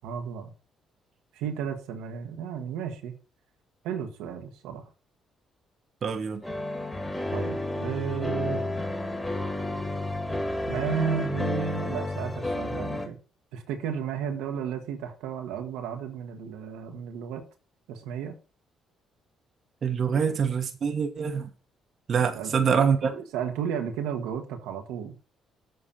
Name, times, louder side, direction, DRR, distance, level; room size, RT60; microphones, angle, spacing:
voice 1, 0.0-0.5 1.3-3.1 3.8-4.9 7.3-8.6 10.7-13.2 13.5-17.4 17.9-18.4 20.1-20.4 22.2-25.1, right 8 dB, 85° right, 1.3 m, -33 dB
voice 2, 6.0-6.4 19.8-21.5 22.1-23.0, right 6 dB, 55° right, 1.1 m, -25 dB
sound 1, 6.4-13.1, left 2 dB, 10° left, 2.3 m, -31 dB
7.8 x 4.1 x 6.8 m
supercardioid pair, 65°, 0 cm